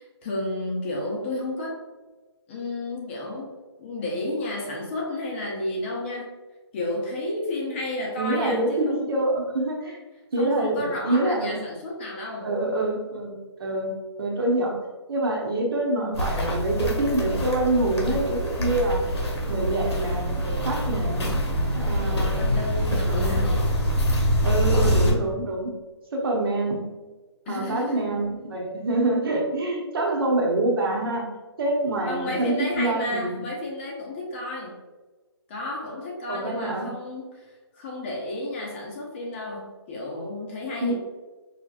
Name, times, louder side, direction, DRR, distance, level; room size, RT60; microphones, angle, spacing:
voice 1, 0.0-1.8 2.5-3.5 3.8-6.3 6.7-9.1 10.4-12.5 22.3-23.5 27.5-28.0 32.0-34.8 35.5-41.0, left 2 dB, 25° left, -2 dB, 0.7 m, -32 dB
voice 2, 8.2-10.0 10.3-11.6 12.4-13.9 14.2-14.8 15.1-19.0 19.5-21.3 21.7-22.5 23.1-23.5 24.4-25.7 26.1-26.8 27.5-31.2 31.6-33.4 36.3-36.9 40.8-41.0, right 2 dB, 60° right, -1 dB, 1.0 m, -26 dB
Walk footsteps, 16.1-25.1, equal, 75° left, 1.2 m, -25 dB
4.8 x 2.9 x 2.4 m, 1.2 s
hypercardioid pair, 155°, 14 cm